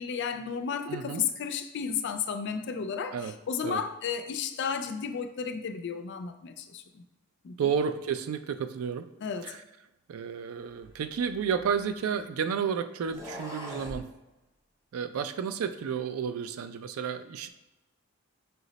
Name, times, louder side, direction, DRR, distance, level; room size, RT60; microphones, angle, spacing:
voice 1, 0.0-7.0 7.4-7.6 9.2-9.5, left 6 dB, 55° left, 0.3 m, -33 dB
voice 2, 0.9-1.3 3.1-3.3 3.6-3.8 7.6-9.1 9.4-9.6 10.1-14.1 14.9-17.5, right 7 dB, 75° right, 0.3 m, -31 dB
sound 1, 10.8-12.3 13.0-14.0, equal, 15° right, 0.5 m, -43 dB
5.6 x 2.0 x 3.9 m
head